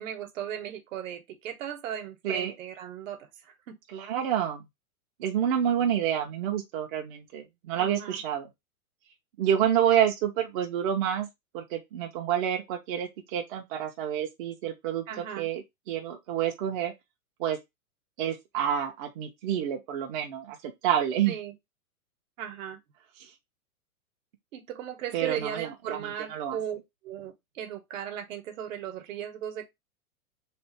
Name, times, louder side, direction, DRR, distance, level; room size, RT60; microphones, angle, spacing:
voice 1, 0.0-3.8 7.8-8.2 15.1-15.5 21.3-21.5 22.4-22.8 24.5-26.8 27.0-29.6, right 9 dB, 60° right, 1.1 m, -37 dB
voice 2, 3.9-4.6 5.2-8.5 9.4-11.3 11.5-16.9 17.4-17.6 18.2-21.4 23.2-23.3 25.1-26.6, right 9 dB, 35° right, 0.7 m, -28 dB
3.4 x 2.5 x 4.2 m
hypercardioid pair, 140°, 43 cm